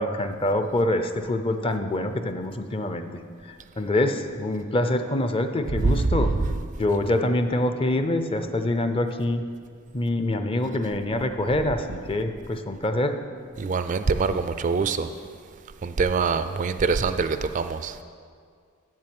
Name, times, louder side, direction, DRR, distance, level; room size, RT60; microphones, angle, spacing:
voice 1, 0.0-3.2 3.8-6.3 6.8-9.4 9.9-13.2, left 1 dB, 25° left, 8 dB, 0.5 m, -25 dB
voice 2, 5.8-6.5 7.1-7.2 13.6-15.1 15.8-18.0, right 4 dB, 35° right, 10 dB, 0.3 m, -24 dB
7.9 x 7.4 x 7.7 m, 2.1 s
head